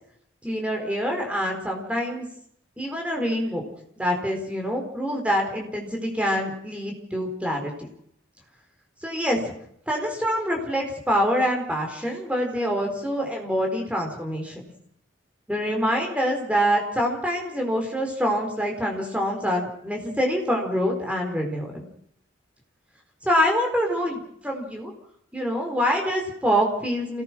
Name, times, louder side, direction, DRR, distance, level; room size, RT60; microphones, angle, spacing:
voice 1, 0.4-2.3 2.8-3.6 4.0-7.9 9.0-9.5 9.9-14.6 15.5-21.9 23.2-24.9 25.3-27.2, equal, 5° right, 1 dB, 4.5 m, -25 dB
27.5 x 18.5 x 6.3 m, 0.69 s
head